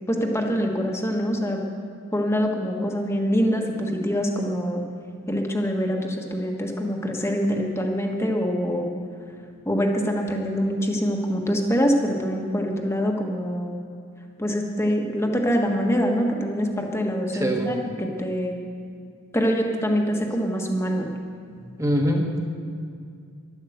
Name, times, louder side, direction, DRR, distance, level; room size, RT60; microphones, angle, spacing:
voice 1, 0.1-1.6 2.1-4.8 5.3-8.9 9.6-13.8 14.4-18.6 19.3-21.1, equal, 10° left, 1 dB, 1.4 m, -24 dB
voice 2, 17.3-17.7 21.6-22.4, equal, 15° right, 2 dB, 1.5 m, -24 dB
12.0 x 11.5 x 7.9 m, 2.3 s
head